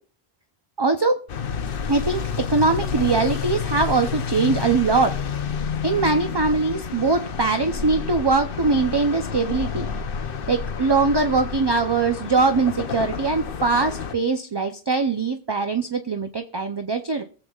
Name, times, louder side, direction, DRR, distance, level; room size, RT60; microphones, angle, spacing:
voice 1, 0.8-1.2 1.9-5.1 5.8-9.9 10.5-17.2, right 4 dB, 30° right, 7 dB, 0.5 m, -22 dB
sound 1, 1.3-14.1, left 6 dB, 60° left, 0.9 m, -29 dB
23.5 x 7.9 x 2.4 m, 0.40 s
omnidirectional pair, 1.0 m